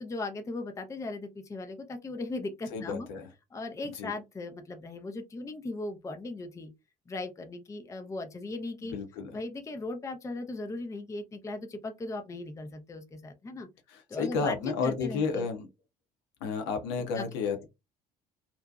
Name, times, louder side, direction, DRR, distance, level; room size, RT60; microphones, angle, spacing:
voice 1, 0.0-3.1 3.5-6.7 7.1-8.9 9.3-13.7 14.1-14.5 14.8-15.5 17.2-17.6, left 2 dB, 15° left, 0.5 m, -38 dB
voice 2, 2.7-3.3 3.9-4.1 8.9-9.3 13.9-15.7 16.4-17.6, left 5 dB, 60° left, 0.7 m, -31 dB
2.6 x 2.2 x 2.3 m
figure-of-eight pair, 55°, 20 cm